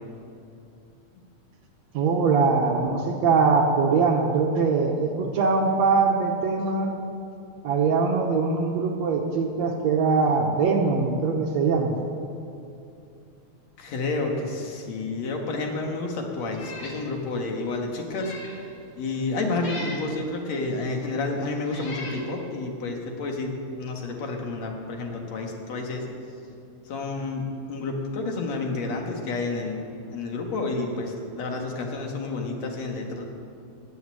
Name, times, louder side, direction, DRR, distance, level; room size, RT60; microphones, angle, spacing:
voice 1, 1.9-6.9 7.6-12.0, right 4 dB, 70° right, 2 dB, 2.0 m, -22 dB
voice 2, 13.8-18.3 19.0-26.1 26.9-29.8 30.1-33.2, left 3 dB, 60° left, 2 dB, 2.8 m, -30 dB
Meow, 16.5-17.0 17.4-17.5 18.0-18.6 19.6-20.1 21.0-21.1 21.6-22.2, left 2 dB, 35° left, 2.5 m, -39 dB
15.5 x 7.1 x 9.8 m, 2.7 s
omnidirectional pair, 3.5 m